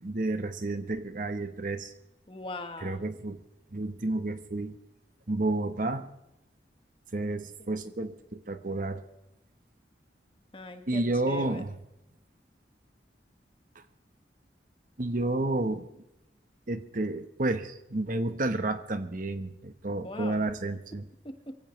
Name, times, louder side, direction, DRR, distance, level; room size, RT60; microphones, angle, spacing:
voice 1, 0.0-1.9 2.8-3.4 3.7-4.8 5.3-6.1 7.1-9.0 10.9-11.7 13.7-13.8 15.0-15.9 16.7-21.1, right 2 dB, 50° right, 9 dB, 1.0 m, -31 dB
voice 2, 2.3-3.1 10.5-11.6 20.0-20.4 21.2-21.5, left 2 dB, 30° left, 7 dB, 1.3 m, -40 dB
23.5 x 16.0 x 3.2 m, 0.87 s
head